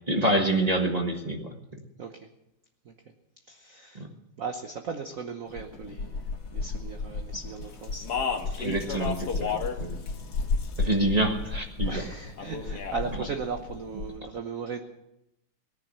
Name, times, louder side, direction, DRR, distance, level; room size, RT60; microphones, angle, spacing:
voice 1, 0.1-1.6 3.9-4.1 8.6-10.0 10.8-12.0, right 1 dB, 20° right, 3 dB, 1.2 m, -27 dB
voice 2, 3.5-4.1 4.4-6.2 6.5-8.8 11.8-14.8, right 5 dB, 50° right, 5 dB, 1.1 m, -37 dB
sound 1, 5.5-14.2, left 3 dB, 70° left, 2.6 m, -34 dB
Speech, 7.8-9.8 10.1-10.9 12.4-13.0, left 6 dB, 50° left, 1.7 m, -32 dB
18.5 x 10.5 x 6.6 m, 0.85 s
omnidirectional pair, 2.4 m